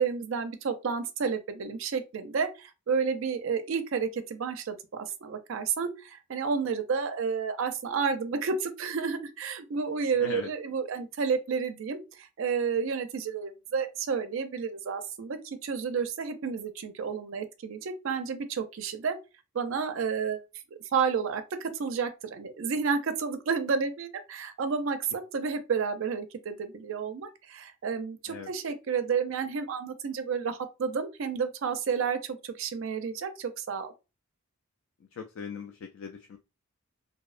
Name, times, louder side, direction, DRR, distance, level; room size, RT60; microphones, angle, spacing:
voice 1, 0.0-19.2 19.5-20.4 20.7-33.9, right 5 dB, 60° right, 0.4 m, -31 dB
voice 2, 10.2-10.5 28.3-28.5 35.1-36.4, left 6 dB, 65° left, 0.3 m, -39 dB
2.6 x 2.0 x 2.4 m
head